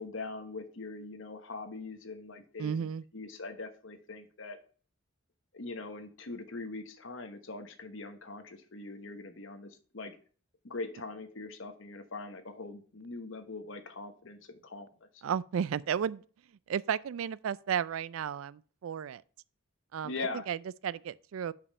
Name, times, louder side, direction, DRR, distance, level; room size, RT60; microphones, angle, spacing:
voice 1, 0.0-2.9 3.1-4.6 5.5-10.2 10.6-14.9 20.0-20.5, left 3 dB, 60° left, 1.0 m, -42 dB
voice 2, 2.6-3.0 15.2-16.2 16.7-19.2 19.9-20.1 20.5-20.6 20.8-21.5, right 8 dB, 70° right, 0.3 m, -33 dB
5.5 x 5.2 x 5.4 m
head